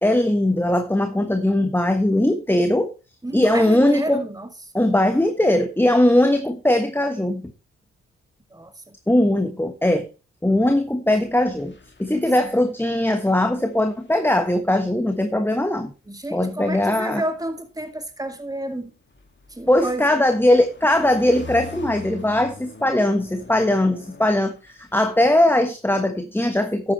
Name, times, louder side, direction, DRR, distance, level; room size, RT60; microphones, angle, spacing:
voice 1, 0.0-2.9 3.3-4.2 4.7-7.4 9.1-10.1 10.4-11.7 12.0-15.9 16.3-17.2 19.7-26.9, left 1 dB, 5° left, 1.3 m, -20 dB
voice 2, 3.2-4.5 4.8-4.9 8.5-8.9 12.1-12.2 16.1-18.9 19.5-20.2, right 1 dB, 10° right, 2.1 m, -31 dB
sound 1, 11.1-13.1 13.3-14.6 15.6-15.9 18.0-25.1, left 4 dB, 35° left, 2.2 m, -43 dB
11.5 x 8.7 x 3.2 m
hypercardioid pair, 40°, 31 cm